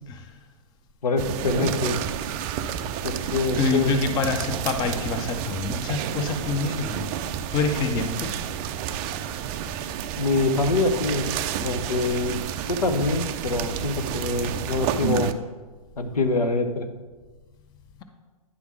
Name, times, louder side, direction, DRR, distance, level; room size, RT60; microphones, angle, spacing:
voice 1, 1.0-2.0 3.0-3.9 10.2-11.3 11.6-12.4 12.7-15.3 16.0-16.9, left 3 dB, 90° left, 7 dB, 0.9 m, -25 dB
sound 1, 1.2-15.3, right 9 dB, 25° right, 0.4 m, -30 dB
voice 2, 3.6-7.1 7.5-8.3, left 4 dB, 20° left, 6 dB, 0.7 m, -26 dB
9.8 x 3.5 x 6.1 m, 1.3 s
hypercardioid pair, 130°, 19 cm